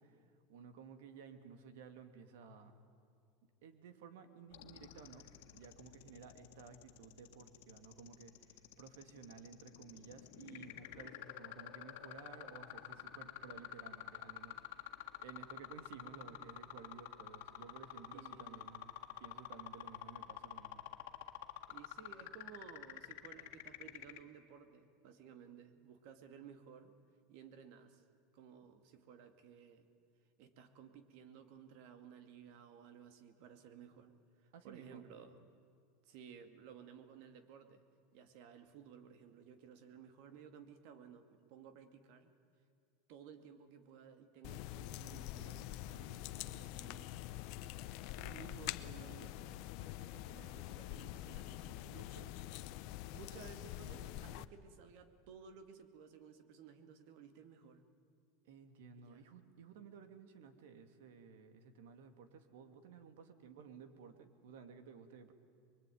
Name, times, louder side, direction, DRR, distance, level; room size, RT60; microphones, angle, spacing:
voice 1, 0.0-2.8 3.6-5.3 5.5-14.6 15.2-18.9 19.2-20.8 34.5-35.0 48.2-48.8 58.4-65.3, right 6 dB, 80° right, 8 dB, 2.4 m, -55 dB
sound 1, 4.5-24.2, left 15 dB, 75° left, 1.8 m, -49 dB
voice 2, 18.1-18.7 21.7-26.9 27.3-28.0 28.3-29.9 30.4-34.2 34.4-35.5 36.0-37.8 38.1-42.3 43.1-47.8 48.1-52.3 53.1-57.8 59.0-59.2, right 7 dB, 60° right, 9 dB, 2.2 m, -57 dB
sound 2, 44.4-54.4, left 15 dB, 55° left, 0.8 m, -46 dB
23.5 x 22.5 x 9.4 m, 2.4 s
supercardioid pair, 155°, 0 cm